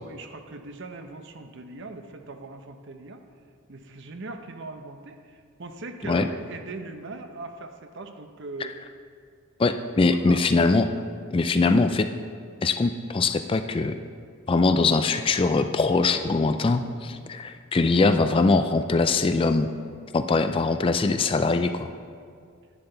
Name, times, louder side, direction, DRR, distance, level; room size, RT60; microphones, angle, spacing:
voice 1, 0.0-3.2 3.7-8.8 10.1-10.5 17.1-17.3, right 3 dB, 55° right, 6 dB, 0.7 m, -40 dB
voice 2, 9.6-10.9 11.3-12.1 12.6-14.0 14.5-19.7 20.1-21.9, left 3 dB, 25° left, 9 dB, 0.3 m, -22 dB
10.5 x 9.8 x 3.9 m, 2.2 s
head